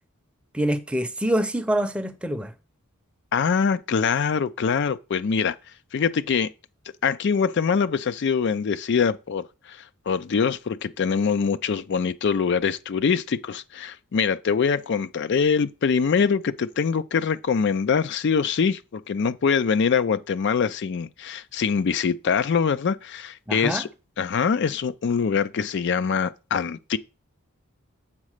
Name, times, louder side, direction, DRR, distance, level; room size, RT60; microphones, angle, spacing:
voice 1, 0.5-2.5 23.5-23.8, right 1 dB, 5° right, 0.7 m, -25 dB
voice 2, 3.3-5.5 5.9-6.5 7.0-9.8 10.1-23.9 24.2-27.0, left 6 dB, 55° left, 0.4 m, -24 dB
7.3 x 4.1 x 6.5 m
head